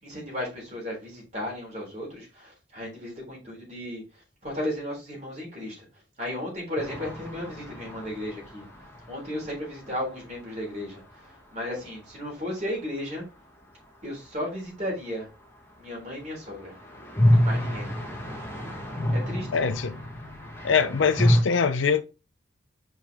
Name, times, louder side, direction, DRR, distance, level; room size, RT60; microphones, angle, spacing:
voice 1, 0.0-4.0 4.4-5.8 6.2-8.6 9.1-11.0 11.5-13.2 14.0-15.3 15.8-16.7 17.3-17.9 19.3-19.5, left 1 dB, 35° right, 3.6 m, -34 dB
sound 1, 6.8-10.6 10.8-10.9 11.1-11.2 16.2-21.4, equal, 15° left, 1.3 m, -27 dB
voice 2, 19.5-20.0 20.6-22.0, left 6 dB, 85° left, 0.5 m, -23 dB
5.6 x 4.9 x 3.5 m
head